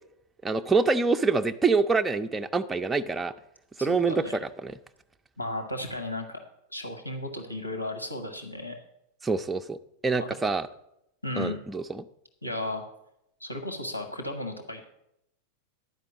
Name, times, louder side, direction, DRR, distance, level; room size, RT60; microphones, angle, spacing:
voice 1, 0.4-3.3 3.8-4.7 9.2-9.8 10.0-10.7 11.4-12.0, right 4 dB, 10° right, 6 dB, 0.4 m, -26 dB
voice 2, 3.8-4.4 5.4-6.4 6.7-8.8 10.2-10.3 11.2-11.6 12.4-12.8 13.4-14.8, left 1 dB, 90° left, 6 dB, 1.2 m, -34 dB
11.0 x 5.1 x 7.9 m, 0.80 s
figure-of-eight pair, 90°, 0 cm